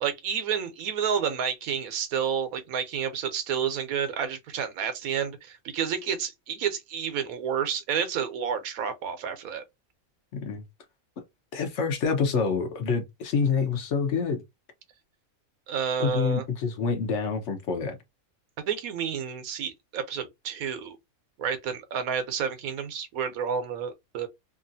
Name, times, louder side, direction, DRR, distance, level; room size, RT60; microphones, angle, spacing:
voice 1, 0.0-9.6 15.7-16.4 18.7-21.0 21.4-24.3, right 7 dB, 85° right, 1.1 m, -30 dB
voice 2, 10.3-10.6 11.5-14.4 16.0-18.0, left 5 dB, 65° left, 0.9 m, -27 dB
2.9 x 2.4 x 2.6 m
omnidirectional pair, 1.5 m